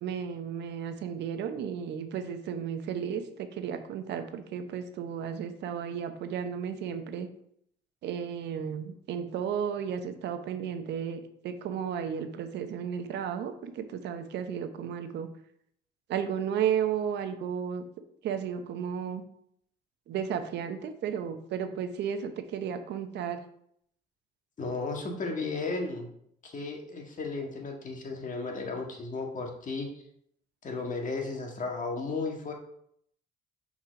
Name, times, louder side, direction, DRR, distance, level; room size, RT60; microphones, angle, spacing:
voice 1, 0.0-7.3 8.0-15.3 16.1-17.8 18.2-19.2 20.1-23.4, right 8 dB, 75° right, 8 dB, 0.9 m, -33 dB
voice 2, 24.6-26.1 26.4-29.9 30.6-32.5, left 3 dB, 45° left, 2 dB, 1.7 m, -34 dB
5.8 x 4.3 x 5.2 m, 0.70 s
cardioid pair, 85°, 18 cm